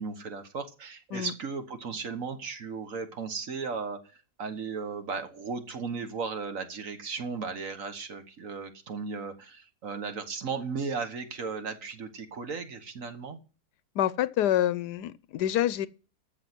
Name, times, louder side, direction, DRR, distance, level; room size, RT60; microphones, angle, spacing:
voice 1, 0.0-4.0 4.4-13.4, right 5 dB, 55° right, 1.7 m, -36 dB
voice 2, 13.9-15.9, left 12 dB, 90° left, 1.3 m, -27 dB
14.0 x 6.5 x 6.0 m
omnidirectional pair, 1.7 m